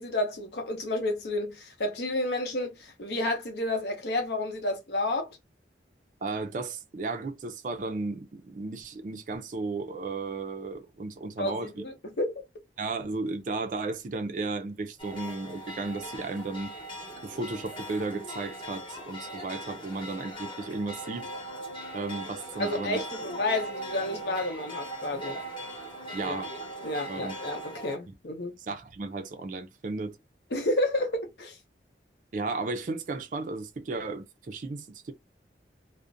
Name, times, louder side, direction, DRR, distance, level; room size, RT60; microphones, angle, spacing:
voice 1, 0.0-5.4 11.4-12.4 22.6-25.4 26.2-26.4 26.8-28.5 30.5-31.6, left 1 dB, 70° left, 0.7 m, -31 dB
voice 2, 6.2-11.8 12.8-16.7 17.2-21.3 21.9-23.0 26.1-26.5 27.1-27.3 28.1-28.2 28.6-30.2 32.3-35.1, right 3 dB, 45° right, 0.4 m, -34 dB
sound 1, 15.0-27.9, right 1 dB, 30° left, 0.8 m, -40 dB
2.4 x 2.0 x 2.5 m
head